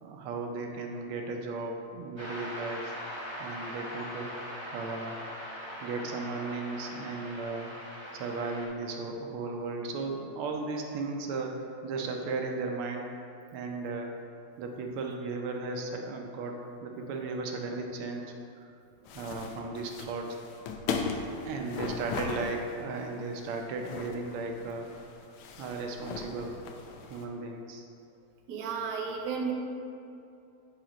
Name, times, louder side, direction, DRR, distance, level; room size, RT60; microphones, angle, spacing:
voice 1, 0.0-3.0 3.4-4.3 4.7-5.2 5.8-7.7 8.1-13.2 13.5-14.1 14.6-18.7 19.1-20.4 21.4-24.9 25.6-26.6 27.1-27.9, right 3 dB, 90° right, 2 dB, 1.6 m, -36 dB
sound 1, 2.2-8.7, equal, 20° right, 0.8 m, -41 dB
voice 2, 17.0-17.4 21.2-21.6 24.3-24.4 28.5-29.5, right 6 dB, 65° right, 0 dB, 1.1 m, -36 dB
sound 2, 19.1-27.3, left 5 dB, 90° left, 1.5 m, -38 dB
8.6 x 2.9 x 5.0 m, 2.6 s
omnidirectional pair, 2.3 m